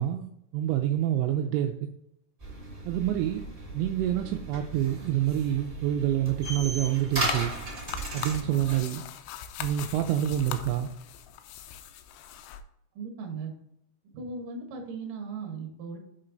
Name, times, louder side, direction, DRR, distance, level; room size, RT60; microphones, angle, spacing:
voice 1, 0.0-1.9 2.9-3.4 3.7-7.5 8.1-9.0 9.6-10.9, right 11 dB, 90° right, 4 dB, 2.5 m, -27 dB
sound 1, 2.4-8.8, right 1 dB, 15° right, 1.8 m, -36 dB
sound 2, 7.1-12.6, left 9 dB, 85° left, 2.9 m, -40 dB
voice 2, 12.9-13.5 14.1-16.0, right 4 dB, 65° right, 2 dB, 2.2 m, -37 dB
8.2 x 4.4 x 3.8 m, 0.80 s
omnidirectional pair, 5.7 m